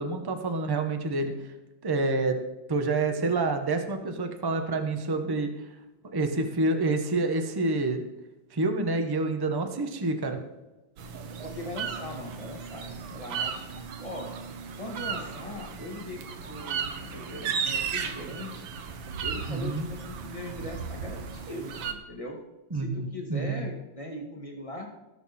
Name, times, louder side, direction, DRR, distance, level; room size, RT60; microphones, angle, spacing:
voice 1, 0.0-1.3 1.8-2.4 2.7-5.5 6.1-8.0 8.5-10.4 19.5-19.9 22.7-23.6, right 3 dB, 20° right, 6 dB, 0.6 m, -28 dB
sound 1, 11.0-21.9, right 6 dB, 80° right, 1.8 m, -35 dB
voice 2, 11.4-13.7 14.0-14.3 14.8-18.7 19.2-22.4 22.7-24.9, left 1 dB, 15° left, 1 dB, 1.8 m, -40 dB
18.5 x 6.4 x 4.2 m, 1.0 s
omnidirectional pair, 2.1 m